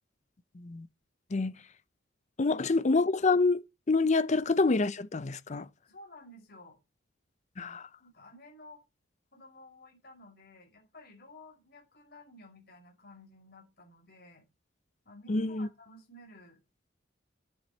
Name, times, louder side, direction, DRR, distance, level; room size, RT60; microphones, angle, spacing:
voice 1, 0.5-0.9 1.3-1.5 2.4-3.6 3.9-5.6 7.6-7.9 15.3-15.7, left 3 dB, 40° left, 0.6 m, -27 dB
voice 2, 5.5-6.8 8.0-8.8 9.3-14.4 15.0-16.6, left 1 dB, 55° left, 5.2 m, -53 dB
11.0 x 9.0 x 4.2 m
head